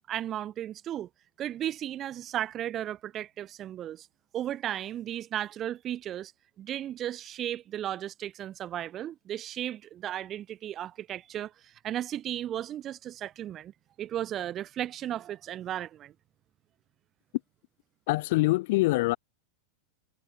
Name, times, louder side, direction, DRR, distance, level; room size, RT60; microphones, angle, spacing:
voice 1, 0.1-1.1 1.4-4.1 4.3-6.3 6.6-13.7 14.0-16.1, right 11 dB, 30° right, 0.5 m, -35 dB
voice 2, 18.1-19.2, left 21 dB, 50° left, 0.3 m, -24 dB
figure-of-eight pair, 90°, 0 cm